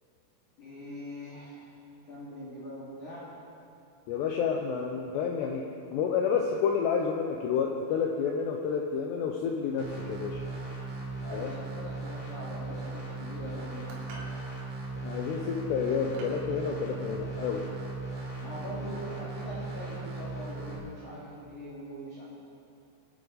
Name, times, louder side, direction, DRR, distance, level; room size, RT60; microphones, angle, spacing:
voice 1, 0.6-1.8 2.0-3.3 11.2-13.9 18.4-22.2, equal, 50° left, -8 dB, 2.9 m, -42 dB
voice 2, 4.1-5.7 5.9-10.4 11.3-11.5 15.0-17.6, left 6 dB, 90° left, 1 dB, 2.4 m, -29 dB
sound 1, 9.8-20.8, right 3 dB, 35° right, 3.1 m, -38 dB
sound 2, 13.9-14.4 15.3-15.5 16.1-16.5, right 2 dB, 85° right, 4.6 m, -46 dB
22.0 x 9.2 x 4.0 m, 2.6 s
omnidirectional pair, 5.8 m